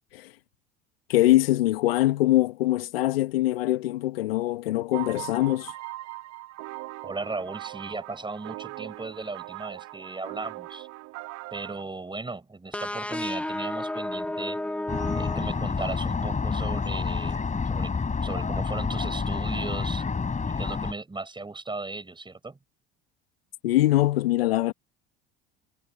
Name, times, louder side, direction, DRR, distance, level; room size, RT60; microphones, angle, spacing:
voice 1, 1.1-5.7 23.6-24.7, left 16 dB, 80° left, 2.2 m, -23 dB
sound 1, 4.9-11.8, right 21 dB, 60° right, 2.4 m, -40 dB
voice 2, 7.0-10.9 11.5-14.6 15.1-17.4 17.7-17.9 18.2-20.1 20.5-22.6, right 3 dB, 15° right, 5.3 m, -36 dB
Oberheim sample self-resonating, 12.7-16.3, left 1 dB, 5° left, 0.9 m, -33 dB
sound 2, 14.9-20.9, left 5 dB, 25° left, 7.0 m, -28 dB
hypercardioid pair, 70°, 29 cm